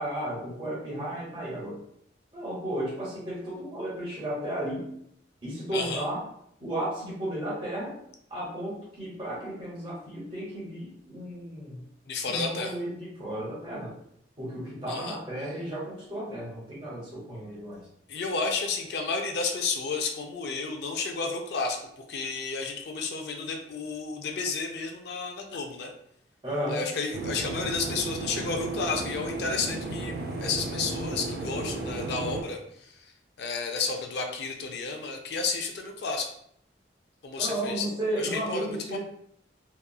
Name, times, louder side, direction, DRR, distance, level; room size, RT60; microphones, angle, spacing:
voice 1, 0.0-1.8 2.3-4.8 5.4-6.2 6.6-7.9 8.3-11.8 12.2-13.9 14.4-17.8 26.4-26.8 37.4-39.0, right 1 dB, 30° right, -6 dB, 1.1 m, -34 dB
voice 2, 5.7-6.0 12.1-12.7 14.9-15.2 18.1-21.8 22.1-25.9 26.7-32.6 33.4-36.3 37.2-37.9 38.2-39.0, left 4 dB, 65° left, 3 dB, 0.4 m, -31 dB
sound 1, 27.1-32.4, right 2 dB, 55° right, 0.4 m, -34 dB
2.9 x 2.3 x 2.2 m, 0.70 s
head